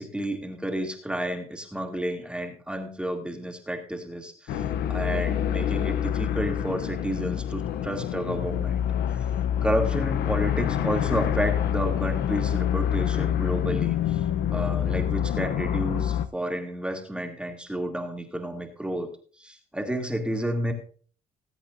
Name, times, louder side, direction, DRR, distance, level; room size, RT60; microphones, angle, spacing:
voice 1, 0.0-8.8 9.1-9.3 9.6-14.2 14.5-19.1 19.4-20.7, right 1 dB, 5° right, 2 dB, 2.2 m, -31 dB
sound 1, 4.5-16.3, left 10 dB, 70° left, 0.8 m, -26 dB
20.0 x 8.4 x 2.6 m, 0.40 s
cardioid pair, 110°, 17 cm